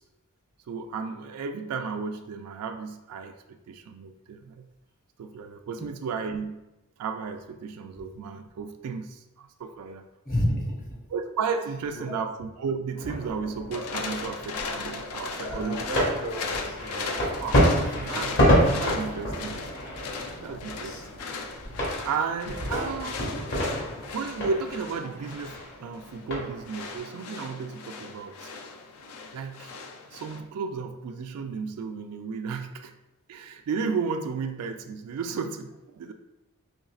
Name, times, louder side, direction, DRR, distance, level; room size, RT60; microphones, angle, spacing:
voice 1, 0.7-4.7 5.2-6.6 7.0-10.1 11.1-16.0 17.3-17.6 18.0-18.4 18.8-19.7 20.4-21.0 22.0-23.2 24.1-28.5 29.3-29.7 30.1-32.9 33.3-36.1, right 5 dB, 85° right, 6 dB, 0.3 m, -33 dB
voice 2, 10.2-10.8 11.9-12.2 15.4-17.4 20.8-21.0 22.5-22.6, equal, 40° left, -3 dB, 1.1 m, -32 dB
sound 1, 12.9-27.0, equal, 55° left, 1.3 m, -28 dB
sound 2, 13.7-30.4, left 4 dB, 75° left, 0.4 m, -38 dB
5.2 x 3.1 x 2.4 m, 0.98 s
head